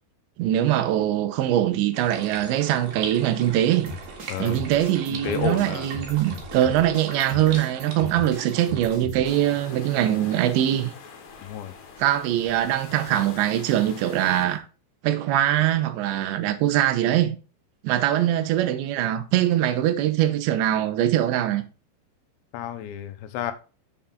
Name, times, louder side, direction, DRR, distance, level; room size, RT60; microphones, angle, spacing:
voice 1, 0.4-3.9 4.4-10.9 12.0-14.6 15.0-17.4 17.8-21.6, right 12 dB, 80° right, 3.1 m, -22 dB
sound 1, 1.9-9.0, right 5 dB, 55° right, 3.0 m, -39 dB
sound 2, 3.9-9.4, left 1 dB, 35° right, 1.5 m, -38 dB
voice 2, 4.3-4.6 5.1-5.9 11.4-11.8 22.5-23.5, left 10 dB, 85° left, 3.1 m, -31 dB
sound 3, 9.2-14.6, left 5 dB, 65° left, 2.6 m, -44 dB
7.3 x 7.0 x 3.8 m
omnidirectional pair, 5.2 m